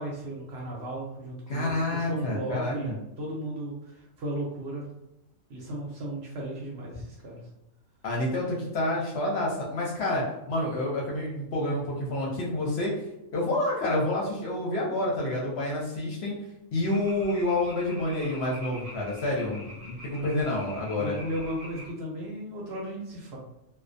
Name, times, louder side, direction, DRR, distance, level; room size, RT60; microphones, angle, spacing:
voice 1, 0.0-4.8 5.5-7.4 19.4-19.6 20.1-20.3 21.0-23.4, right 1 dB, 60° right, -3 dB, 0.7 m, -35 dB
voice 2, 1.5-3.0 8.0-12.9 13.3-16.4 16.7-21.2, left 1 dB, 60° left, -3 dB, 0.8 m, -28 dB
sound 1, 16.9-21.9, equal, 85° right, 1.1 m, -45 dB
2.3 x 2.1 x 2.5 m, 0.87 s
omnidirectional pair, 1.4 m